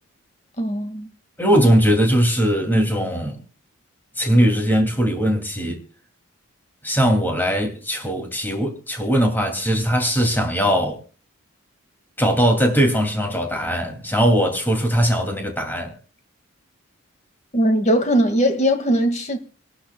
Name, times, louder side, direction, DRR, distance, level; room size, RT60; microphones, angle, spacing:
voice 1, 0.6-1.1 17.5-19.4, equal, 35° left, 1.9 m, -19 dB
voice 2, 1.4-3.4 4.2-5.8 6.8-11.0 12.2-16.0, equal, 10° left, 2.5 m, -20 dB
26.0 x 12.0 x 2.3 m
head